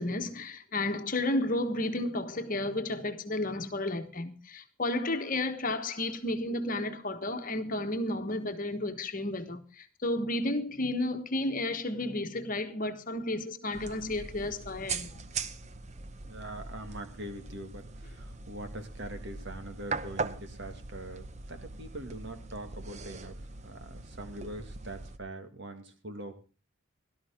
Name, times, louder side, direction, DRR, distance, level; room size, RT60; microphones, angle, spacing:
voice 1, 0.0-15.1, left 1 dB, 40° left, 1.3 m, -32 dB
sound 1, 13.7-25.2, right 4 dB, 30° right, 0.8 m, -41 dB
voice 2, 16.3-26.3, right 1 dB, 55° right, 2.0 m, -43 dB
17.5 x 12.5 x 3.6 m
head